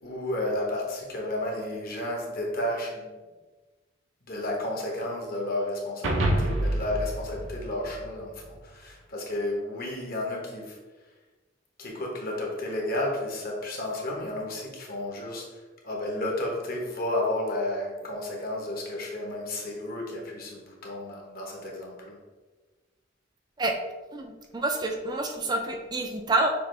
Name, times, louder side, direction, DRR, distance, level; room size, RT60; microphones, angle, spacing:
voice 1, 0.0-3.1 4.2-10.8 11.8-22.2, left 1 dB, 50° left, -1 dB, 1.1 m, -32 dB
sound 1, 6.0-8.5, right 1 dB, 90° right, 0.7 m, -28 dB
voice 2, 24.1-26.5, right 2 dB, 20° right, 3 dB, 0.4 m, -28 dB
6.6 x 2.5 x 3.2 m, 1.3 s
head